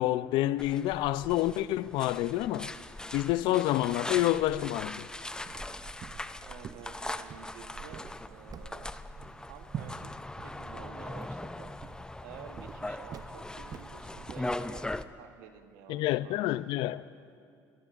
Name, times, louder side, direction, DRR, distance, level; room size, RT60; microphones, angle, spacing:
voice 1, 0.0-2.7 3.1-5.0 15.9-17.0, left 15 dB, 75° left, 0.4 m, -28 dB
sound 1, 0.6-15.0, left 2 dB, 10° left, 0.5 m, -40 dB
sound 2, 5.5-14.8, right 7 dB, 45° right, 0.6 m, -47 dB
voice 2, 6.4-8.9 9.5-11.7 12.2-16.9, right 8 dB, 85° right, 1.0 m, -51 dB
26.0 x 14.0 x 2.4 m
supercardioid pair, 80°, 8 cm